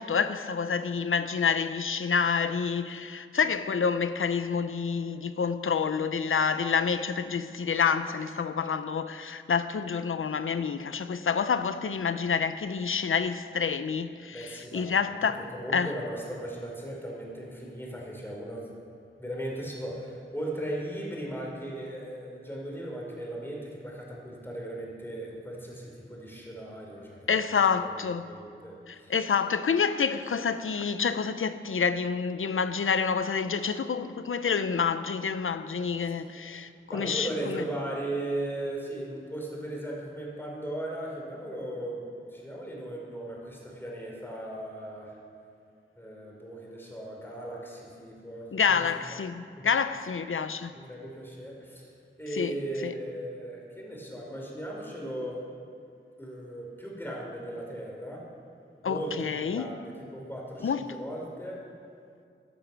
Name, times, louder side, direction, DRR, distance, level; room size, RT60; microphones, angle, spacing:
voice 1, 0.0-15.4 15.7-15.9 27.3-28.3 28.9-37.6 48.5-50.7 52.3-52.9 58.8-59.7 60.6-61.0, left 6 dB, 80° left, 0.7 m, -28 dB
voice 2, 14.3-14.9 15.5-18.7 19.2-27.3 27.8-27.9 28.2-29.1 36.0-36.1 36.5-36.6 36.9-42.0 42.3-45.2 46.0-48.8 50.9-51.8 52.2-55.4 56.2-58.2 58.8-61.6, right 1 dB, 10° left, 4.4 m, -37 dB
17.0 x 12.5 x 6.2 m
wide cardioid pair, 85°, 21 cm